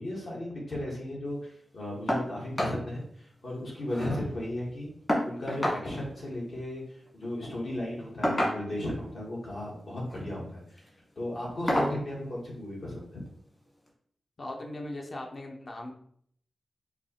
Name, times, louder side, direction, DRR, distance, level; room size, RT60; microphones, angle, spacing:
voice 1, 0.0-4.9 5.2-10.6 11.1-13.0, left 1 dB, 70° left, -4 dB, 1.5 m, -35 dB
sound 1, 2.1-2.3 2.6-2.8 3.2-3.3 3.5-4.2 5.1-5.8 7.1-7.3 8.2-8.9 9.9-10.2 10.7-10.9 11.7-12.0 13.3-13.4 13.9-14.0, equal, 30° left, 1.4 m, -29 dB
voice 2, 14.4-15.9, left 1 dB, 50° left, 1 dB, 0.7 m, -39 dB
4.6 x 2.3 x 2.9 m, 0.64 s
cardioid pair, 65°, 0 cm